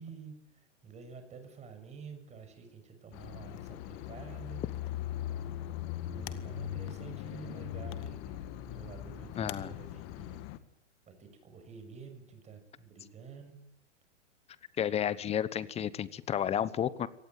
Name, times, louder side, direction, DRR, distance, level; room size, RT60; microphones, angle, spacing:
voice 1, 0.0-4.6 6.1-8.4 8.7-10.4 11.1-13.6, right 5 dB, 20° right, 7 dB, 6.2 m, -49 dB
sound 1, 3.1-10.6, left 11 dB, 35° left, 1.8 m, -40 dB
voice 2, 9.4-9.7 14.8-17.1, left 9 dB, 20° left, 18 dB, 1.0 m, -31 dB
24.0 x 19.0 x 9.3 m, 0.78 s
hypercardioid pair, 125°, 35 cm